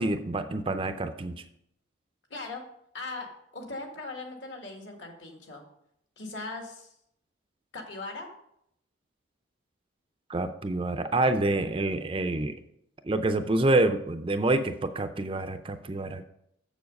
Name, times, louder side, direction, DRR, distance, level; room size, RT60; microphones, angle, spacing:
voice 1, 0.0-1.4 10.3-12.5 13.0-16.2, right 2 dB, 25° right, 8 dB, 0.5 m, -27 dB
voice 2, 2.3-2.6 2.9-5.6 6.2-6.9 7.7-8.3, left 3 dB, 65° left, 3 dB, 1.8 m, -39 dB
7.1 x 7.0 x 5.3 m, 0.74 s
head